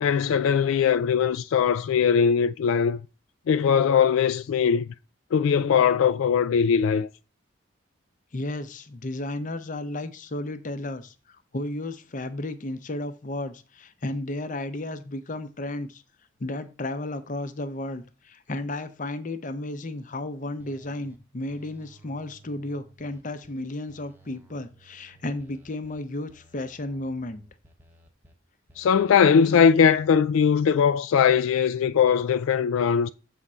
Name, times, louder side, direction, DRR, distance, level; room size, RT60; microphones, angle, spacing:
voice 1, 0.0-3.0 3.5-4.8 5.3-7.1 28.8-33.1, left 7 dB, 80° left, 0.3 m, -20 dB
voice 2, 8.3-16.0 16.4-27.4, left 2 dB, 40° left, 0.6 m, -33 dB
sound 1, 20.6-21.2 21.5-23.5 23.9-26.0 26.3-28.3 28.7-30.2, right 2 dB, 10° right, 0.8 m, -56 dB
7.4 x 3.6 x 5.4 m
head